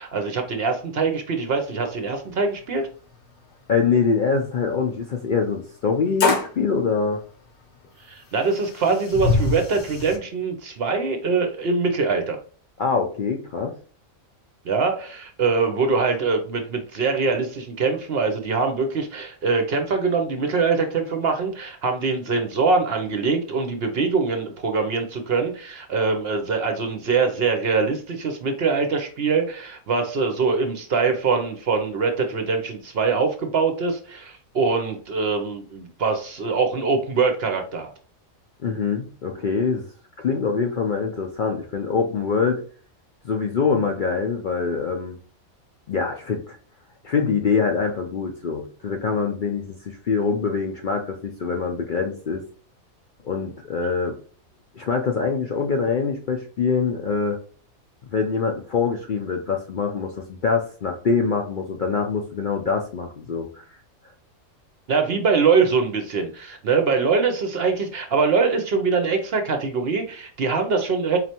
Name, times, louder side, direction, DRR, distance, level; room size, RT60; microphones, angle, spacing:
voice 1, 0.0-2.9 8.1-12.4 14.6-37.9 64.9-71.2, right 4 dB, 55° right, 5 dB, 0.7 m, -23 dB
sound 1, 1.9-2.0 2.3-2.4 3.1-3.2 5.3-5.4 6.2-6.6 7.8-7.9 8.4-10.2, left 3 dB, 50° left, 0.8 m, -24 dB
voice 2, 3.7-7.2 12.8-13.7 38.6-39.9 40.2-42.6 43.2-45.2 45.9-46.6 47.0-52.4 53.2-54.2 54.8-57.4 58.1-63.6, left 5 dB, 65° left, 2 dB, 0.5 m, -24 dB
4.2 x 3.2 x 2.8 m, 0.42 s
omnidirectional pair, 1.4 m